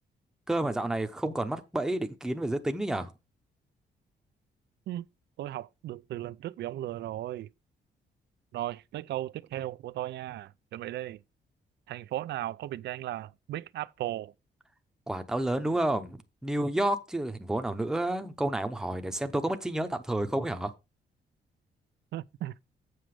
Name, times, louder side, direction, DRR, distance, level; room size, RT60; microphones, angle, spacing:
voice 1, 0.5-3.1 15.1-20.7, right 1 dB, 5° right, 0.7 m, -30 dB
voice 2, 5.4-7.5 8.5-11.2 11.9-14.3 22.1-22.5, right 14 dB, 75° right, 0.4 m, -36 dB
7.8 x 6.3 x 4.8 m
cardioid pair, 150°, 18 cm